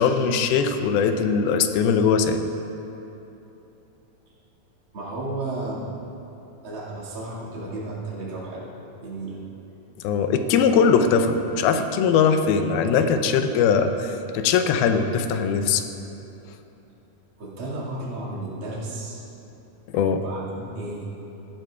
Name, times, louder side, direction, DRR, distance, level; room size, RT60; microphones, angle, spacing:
voice 1, 0.0-2.4 10.0-15.8 19.9-20.2, left 6 dB, 90° left, 8 dB, 2.5 m, -20 dB
voice 2, 4.9-5.9 6.6-9.4 17.4-19.2 20.1-21.1, right 2 dB, 40° right, -7 dB, 2.4 m, -33 dB
17.5 x 11.5 x 2.3 m, 3.0 s
omnidirectional pair, 4.2 m